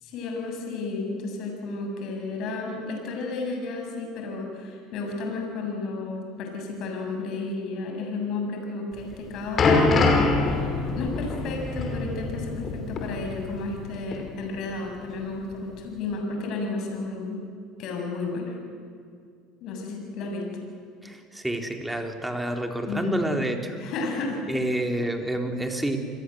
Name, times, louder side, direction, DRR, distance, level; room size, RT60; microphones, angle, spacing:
voice 1, 0.0-17.4 17.8-18.5 19.6-20.5 22.9-23.2 23.8-24.4, left 3 dB, 55° left, 2 dB, 7.2 m, -32 dB
sound 1, 9.0-13.9 14.1-14.3 15.0-15.1, left 3 dB, 35° left, 5.8 m, -24 dB
voice 2, 21.0-23.8 24.5-26.0, right 1 dB, 5° right, 4 dB, 3.8 m, -28 dB
29.0 x 22.0 x 8.0 m, 2.2 s
hypercardioid pair, 70°, 0 cm